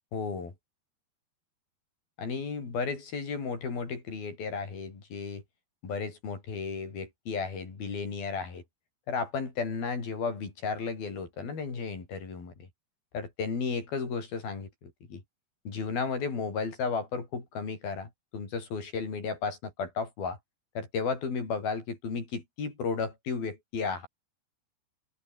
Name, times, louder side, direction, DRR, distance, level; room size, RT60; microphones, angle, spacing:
voice 1, 0.1-0.5 2.2-5.4 5.8-8.6 9.1-12.7 13.1-15.2 15.7-20.4 20.8-24.1, left 5 dB, 60° left, 7.6 m, -34 dB
open air
omnidirectional pair, 4.9 m